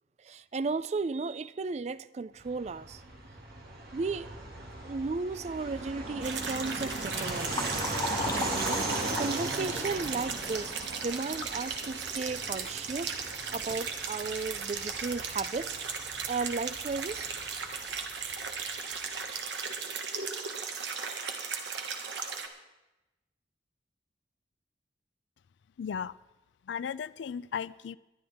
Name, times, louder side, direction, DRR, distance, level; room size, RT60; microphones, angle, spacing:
voice 1, 0.2-3.0 3.9-4.3 4.8-7.8 8.2-8.9 9.2-10.7 11.0-13.2 13.5-15.8 16.3-17.3 18.2-18.4 18.8-18.9, right 4 dB, 35° right, 0.3 m, -34 dB
Fixed-wing aircraft airplane, 2.4-18.6, right 2 dB, 55° right, 2.3 m, -38 dB
sound 1, 6.2-22.5, right 5 dB, 80° right, 1.4 m, -37 dB
Liquid, 6.5-11.6 12.0-12.1 13.0-13.1 13.5-13.8 14.5-14.6 15.1-15.2 15.6-15.8, left 3 dB, 20° left, 0.8 m, -39 dB
voice 2, 25.8-26.1 26.7-28.0, left 7 dB, 85° left, 0.4 m, -35 dB
21.0 x 11.0 x 3.6 m
head